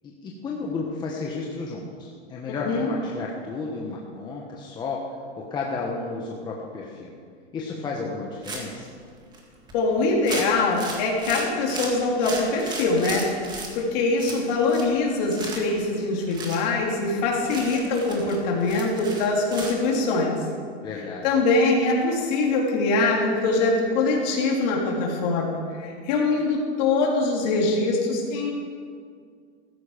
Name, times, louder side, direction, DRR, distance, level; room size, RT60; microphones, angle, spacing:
voice 1, 0.0-5.0 5.4-7.2 7.5-8.9 20.8-21.3, left 3 dB, 15° left, -2 dB, 1.1 m, -32 dB
sound 1, 8.4-8.9 9.3-9.4 9.7-9.8 10.2-13.7 14.1-15.0 15.2-15.8 16.3-16.6 17.1-17.2 17.4-19.8, right 3 dB, 15° right, 1.9 m, -35 dB
voice 2, 9.7-20.4 21.2-28.5, left 3 dB, 40° left, -2 dB, 3.6 m, -23 dB
15.0 x 14.0 x 5.1 m, 2.1 s
hypercardioid pair, 155°, 33 cm